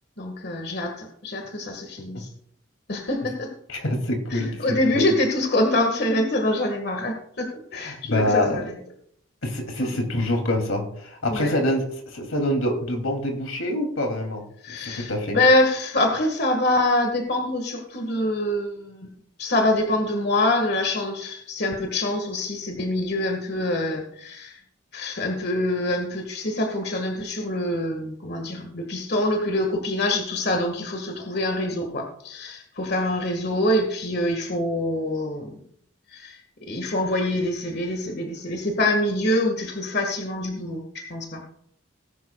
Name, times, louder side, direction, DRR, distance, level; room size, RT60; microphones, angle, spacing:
voice 1, 0.2-2.3 2.9-3.5 4.3-8.8 9.8-9.9 11.3-11.5 14.6-19.1 19.4-24.6 24.9-35.6 36.1-41.4, left 1 dB, 50° left, 3 dB, 1.7 m, -25 dB
voice 2, 3.7-4.6 4.9-5.1 7.7-8.6 9.4-14.4 14.8-15.4, left 1 dB, 85° left, 3 dB, 2.8 m, -26 dB
19.0 x 10.5 x 2.3 m, 0.67 s
head